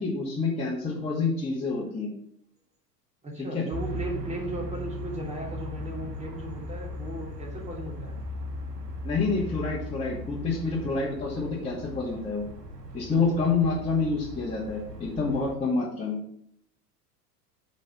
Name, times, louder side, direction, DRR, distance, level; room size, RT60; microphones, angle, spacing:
voice 1, 0.0-2.1 3.5-3.6 9.0-12.4 12.9-16.2, left 4 dB, 10° left, -8 dB, 2.2 m, -28 dB
voice 2, 3.2-8.2 13.4-13.5, right 1 dB, 15° right, -1 dB, 2.7 m, -36 dB
sound 1, 3.7-15.6, equal, 80° right, 1.2 m, -38 dB
8.8 x 4.2 x 5.6 m, 0.70 s
figure-of-eight pair, 85°, 48 cm